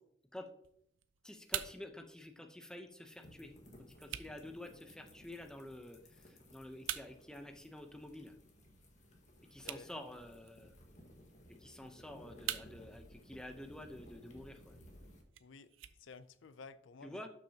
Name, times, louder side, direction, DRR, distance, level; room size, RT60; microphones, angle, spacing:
sound 1, 0.6-16.6, right 12 dB, 85° right, 0.5 m, -49 dB
voice 1, 1.2-3.5 4.0-8.3 9.5-10.7 11.6-14.7 17.0-17.3, left 1 dB, 5° left, 0.7 m, -49 dB
sound 2, 3.1-15.2, equal, 40° left, 1.5 m, -59 dB
voice 2, 9.6-10.0 15.4-17.2, left 4 dB, 75° left, 0.5 m, -54 dB
11.5 x 6.2 x 2.8 m
head